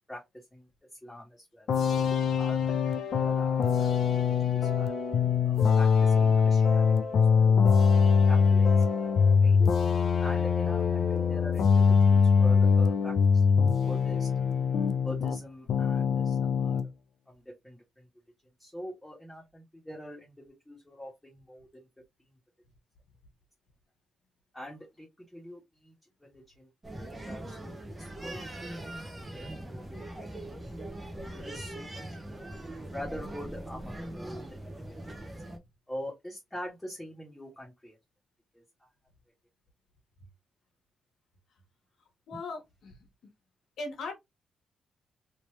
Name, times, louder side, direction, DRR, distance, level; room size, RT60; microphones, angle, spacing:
voice 1, 0.1-1.7 2.4-4.9 5.4-7.6 8.0-8.9 9.4-9.6 10.2-14.3 15.0-16.8 17.3-18.1 18.6-21.9 22.3-22.4 24.5-25.9 26.2-26.7 27.2-28.4 28.7-29.2 29.7-30.0 30.5-30.6 31.3-32.5 32.9-34.4 35.9-38.0 38.5-38.9 42.3-42.4, equal, 5° left, 1.4 m, -44 dB
sound 1, 1.7-15.4 15.7-16.9, left 6 dB, 55° left, 0.5 m, -23 dB
sound 2, 26.8-35.6, right 1 dB, 10° right, 0.8 m, -41 dB
voice 2, 42.3-43.0 43.8-44.1, left 3 dB, 70° left, 1.3 m, -38 dB
3.3 x 2.9 x 3.0 m
wide cardioid pair, 170°, 0 cm